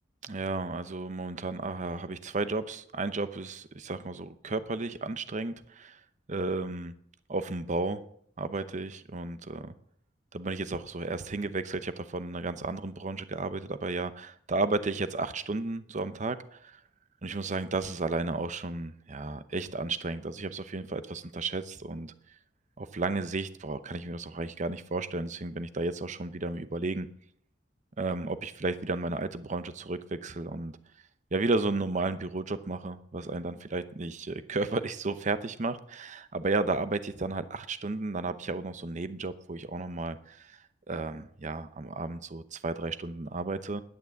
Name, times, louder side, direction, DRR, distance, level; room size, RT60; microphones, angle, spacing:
voice 1, 0.2-6.0 6.3-6.9 7.3-8.0 8.4-9.7 10.3-16.8 17.2-22.1 22.8-27.1 28.0-30.8 31.3-40.6 40.9-43.8, right 3 dB, 40° right, 12 dB, 0.8 m, -33 dB
11.0 x 9.5 x 7.7 m, 0.68 s
head